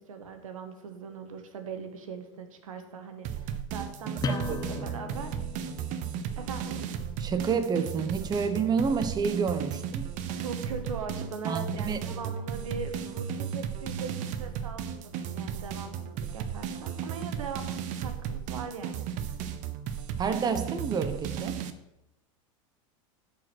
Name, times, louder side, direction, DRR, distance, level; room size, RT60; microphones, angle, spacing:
voice 1, 0.0-5.3 6.4-6.9 10.4-19.4, right 5 dB, 85° right, 1.5 m, -40 dB
sound 1, 3.2-21.7, right 8 dB, 50° right, 0.9 m, -35 dB
sound 2, 4.2-9.6, left 3 dB, 20° left, 0.7 m, -40 dB
voice 2, 4.3-4.9 7.2-10.1 11.5-12.0 20.2-21.6, right 6 dB, 25° right, 0.9 m, -29 dB
10.5 x 5.1 x 6.1 m
hypercardioid pair, 105°, 17 cm